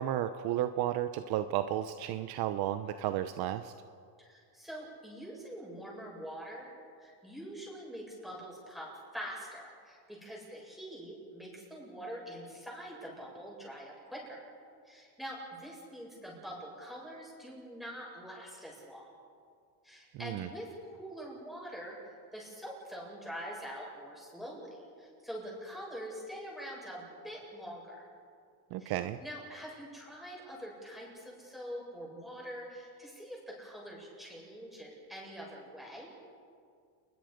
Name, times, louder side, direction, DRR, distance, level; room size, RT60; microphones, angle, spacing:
voice 1, 0.0-3.7 20.2-20.5 28.7-29.2, right 12 dB, 55° right, 10 dB, 0.9 m, -33 dB
voice 2, 4.2-6.7 7.0-14.4 14.8-19.1 19.8-22.0 22.3-28.1 28.8-28.9 29.2-36.1, equal, ahead, -4 dB, 7.8 m, -44 dB
30.0 x 21.5 x 5.3 m, 2.3 s
cardioid pair, 145°, 44 cm